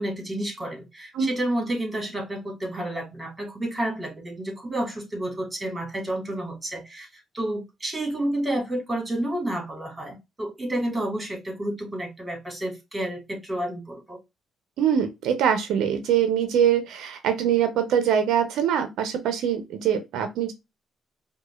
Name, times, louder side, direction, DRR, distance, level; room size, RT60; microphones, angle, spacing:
voice 1, 0.0-7.1 7.3-14.2, right 1 dB, 20° right, 1.8 m, -30 dB
voice 2, 14.8-20.5, right 8 dB, 85° right, 0.6 m, -23 dB
4.8 x 2.3 x 2.3 m
cardioid pair, 90°, 0 cm